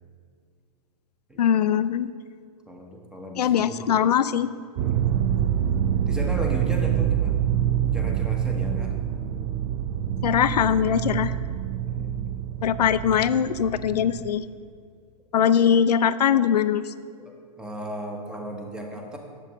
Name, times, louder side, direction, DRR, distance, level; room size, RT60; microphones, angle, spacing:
voice 1, 1.4-2.1 3.4-4.5 10.2-11.3 12.6-14.4 15.3-16.8, left 8 dB, 90° left, 14 dB, 0.4 m, -21 dB
voice 2, 2.7-3.8 4.8-5.2 6.1-7.5 7.9-9.0 11.8-12.5 17.2-19.2, equal, 5° right, 1 dB, 1.0 m, -36 dB
sound 1, 4.8-14.3, right 10 dB, 30° right, 0.4 m, -26 dB
10.5 x 7.6 x 3.1 m, 2.1 s
hypercardioid pair, 125°, 20 cm